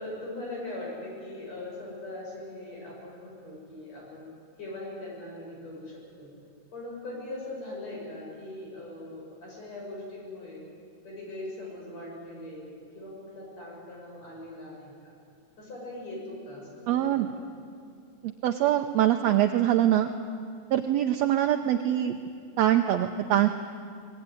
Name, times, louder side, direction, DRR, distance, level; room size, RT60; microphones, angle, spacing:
voice 1, 0.0-4.3 4.6-6.3 6.7-10.6 11.0-15.1 15.6-17.2, left 1 dB, 60° left, -3 dB, 8.4 m, -40 dB
voice 2, 16.9-17.3 18.2-20.1 20.7-22.2 22.6-23.5, right 12 dB, 70° right, 5 dB, 1.9 m, -23 dB
23.5 x 20.0 x 9.8 m, 2.4 s
omnidirectional pair, 3.4 m